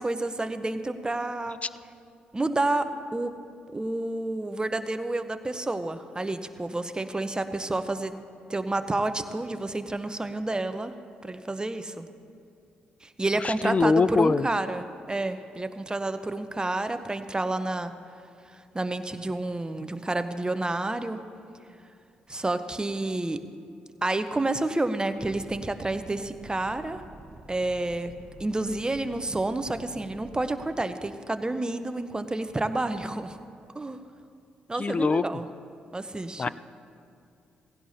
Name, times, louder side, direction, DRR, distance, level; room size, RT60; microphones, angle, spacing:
voice 1, 0.0-1.6 2.3-3.3 3.7-8.1 8.5-10.9 11.2-12.1 13.0-17.9 18.5-21.2 22.3-23.4 24.0-27.0 27.5-28.1 28.4-33.4 33.7-34.0 34.7-35.5 35.9-36.5, right 2 dB, 20° right, 10 dB, 0.8 m, -29 dB
voice 2, 13.4-14.4 34.8-35.2 36.4-36.5, left 4 dB, 30° left, 17 dB, 0.4 m, -23 dB
sound 1, 25.2-30.7, right 3 dB, 75° right, 1.1 m, -48 dB
17.5 x 16.0 x 2.8 m, 2.4 s
hypercardioid pair, 40°, 4 cm